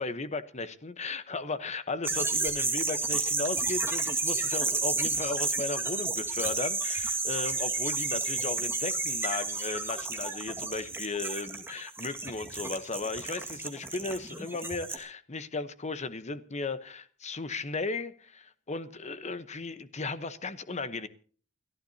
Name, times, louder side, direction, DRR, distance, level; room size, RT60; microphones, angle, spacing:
voice 1, 0.0-21.1, left 3 dB, 35° left, 1.0 m, -36 dB
sound 1, 2.0-15.0, right 3 dB, 10° right, 1.9 m, -31 dB
29.0 x 11.5 x 2.8 m
head